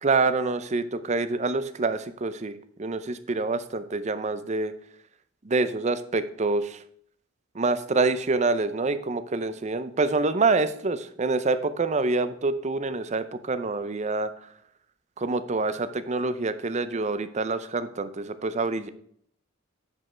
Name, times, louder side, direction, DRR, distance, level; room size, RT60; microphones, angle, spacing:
voice 1, 0.0-2.5 2.8-4.7 5.5-6.8 7.6-14.3 15.2-18.9, right 3 dB, 35° right, 12 dB, 0.6 m, -26 dB
9.7 x 5.3 x 4.4 m, 0.64 s
head